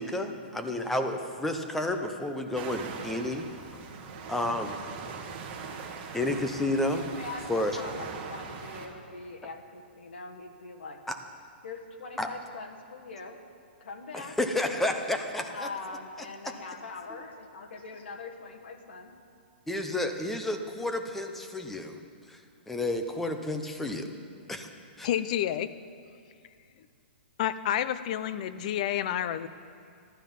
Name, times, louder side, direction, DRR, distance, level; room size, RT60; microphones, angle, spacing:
voice 1, 0.0-3.5 4.3-4.7 6.1-7.0 7.5-7.8 11.1-11.2 12.2-12.3 14.1-15.7 19.7-22.0 22.3-22.4 22.7-24.1 24.5-24.7 25.0-25.1, left 1 dB, 5° left, 5 dB, 0.7 m, -30 dB
sound 1, 2.5-8.9, right 5 dB, 30° right, 1.4 m, -41 dB
voice 2, 6.8-11.1 11.6-13.4 13.8-14.4 15.5-19.1, left 3 dB, 80° left, 2 dB, 1.6 m, -42 dB
voice 3, 25.0-25.7 27.4-29.5, left 11 dB, 40° left, 13 dB, 0.5 m, -29 dB
14.5 x 12.0 x 5.4 m, 2.4 s
hypercardioid pair, 160°, 6 cm